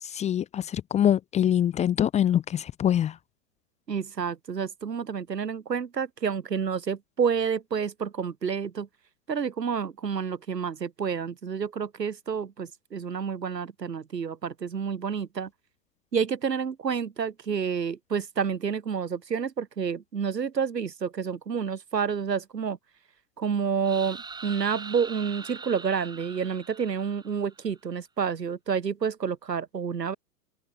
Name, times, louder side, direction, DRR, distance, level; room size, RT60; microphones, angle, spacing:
voice 1, 0.0-3.2, left 10 dB, 15° left, 1.0 m, -24 dB
voice 2, 3.9-8.9 9.3-15.5 16.1-22.8 23.4-30.1, right 6 dB, 85° right, 3.6 m, -29 dB
sound 1, 23.8-27.7, right 4 dB, 10° right, 4.2 m, -42 dB
open air
hypercardioid pair, 130°, 48 cm